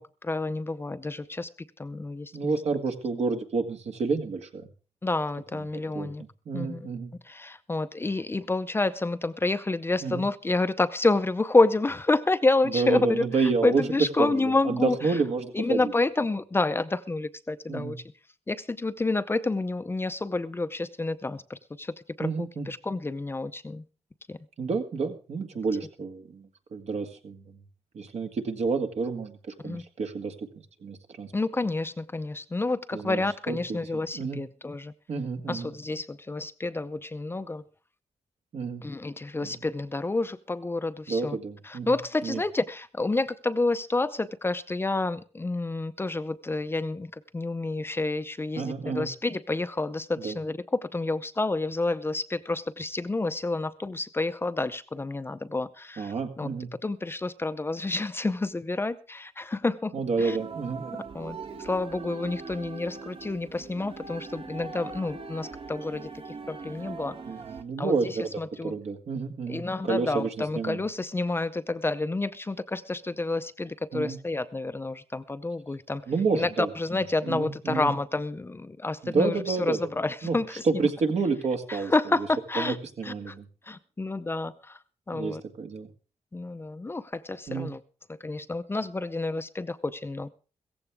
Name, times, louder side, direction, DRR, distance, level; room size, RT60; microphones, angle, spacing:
voice 1, 0.0-1.5 1.8-2.6 5.0-6.2 6.5-6.9 7.2-15.0 15.5-18.0 18.5-23.8 24.3-24.4 29.6-29.8 31.3-34.9 35.5-37.6 38.8-41.4 41.6-56.5 56.8-59.9 60.2-60.4 61.1-66.1 66.5-67.2 67.8-68.7 69.5-76.0 76.3-80.9 81.7-82.8 83.0-83.3 83.6-84.8 85.1-85.4 86.3-87.8 88.2-90.3, left 2 dB, 20° left, 11 dB, 0.6 m, -29 dB
voice 2, 2.3-4.7 5.9-6.1 6.5-7.1 10.0-10.2 12.7-13.8 14.2-15.9 17.7-17.9 22.2-22.7 24.6-27.6 27.9-30.5 30.8-31.3 32.9-33.8 34.1-34.4 35.1-35.7 38.5-38.8 39.4-39.5 41.1-41.9 42.2-42.4 48.6-49.1 50.2-50.4 56.0-56.7 59.9-61.0 67.3-68.3 68.6-70.3 70.6-70.8 73.9-74.2 76.1-76.7 77.2-77.9 79.0-79.8 80.2-80.4 80.6-82.3 82.6-83.5 85.1-85.9 87.5-87.7, right 4 dB, 70° right, 4 dB, 1.9 m, -29 dB
sound 1, 60.2-67.6, right 4 dB, 55° right, 1.2 m, -41 dB
16.0 x 15.0 x 3.5 m, 0.36 s
wide cardioid pair, 135°, 11 cm